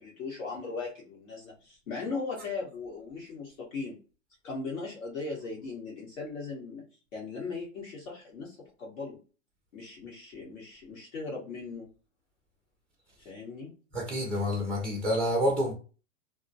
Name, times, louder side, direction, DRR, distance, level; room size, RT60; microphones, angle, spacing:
voice 1, 0.0-4.0 4.4-6.9 7.1-9.2 9.7-11.9 13.2-13.7, left 4 dB, 65° left, 1.2 m, -38 dB
voice 2, 13.9-15.7, equal, 5° left, 0.4 m, -28 dB
2.2 x 2.1 x 2.7 m
hypercardioid pair, 120°, 39 cm